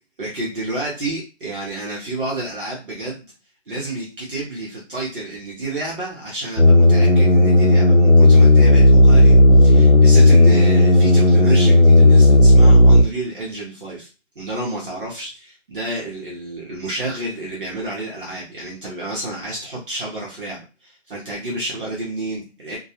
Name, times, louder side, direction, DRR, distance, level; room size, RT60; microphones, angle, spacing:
voice 1, 0.2-3.3 3.7-14.1 14.4-22.8, right 1 dB, 45° right, -4 dB, 0.8 m, -30 dB
sound 1, 6.6-13.0, left 1 dB, 55° left, 0.8 m, -11 dB
2.3 x 2.2 x 2.8 m, 0.32 s
hypercardioid pair, 170°, 36 cm